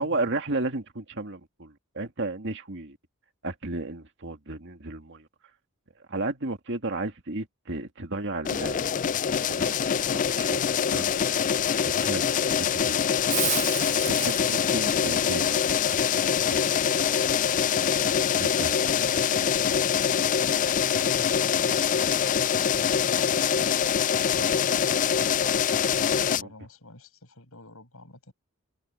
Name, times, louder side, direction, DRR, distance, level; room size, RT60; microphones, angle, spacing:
voice 1, 0.0-3.0 3.4-5.3 6.1-9.0 9.6-9.8 10.1-11.2 11.8-13.1 14.1-16.8 18.4-18.8 24.3-24.6 26.4-26.5, right 2 dB, 55° right, 2.2 m, -34 dB
sound 1, 8.4-26.4, left 8 dB, 35° left, 0.3 m, -24 dB
Hiss, 13.3-18.9, right 10 dB, 35° right, 1.4 m, -36 dB
voice 2, 14.0-14.7 19.0-19.7 20.1-23.7 26.1-28.3, left 1 dB, 70° left, 6.4 m, -48 dB
head